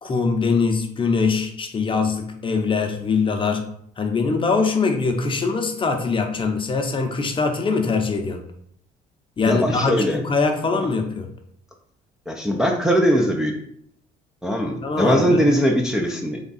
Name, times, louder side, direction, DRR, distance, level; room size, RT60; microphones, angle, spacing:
voice 1, 0.0-3.6 4.0-8.4 9.4-11.3 14.8-15.5, left 4 dB, 30° left, 4 dB, 0.7 m, -22 dB
voice 2, 9.5-10.2 12.3-13.5 14.4-16.4, equal, 5° right, 0 dB, 0.6 m, -20 dB
3.6 x 3.5 x 4.1 m, 0.68 s
cardioid pair, 110°, 17 cm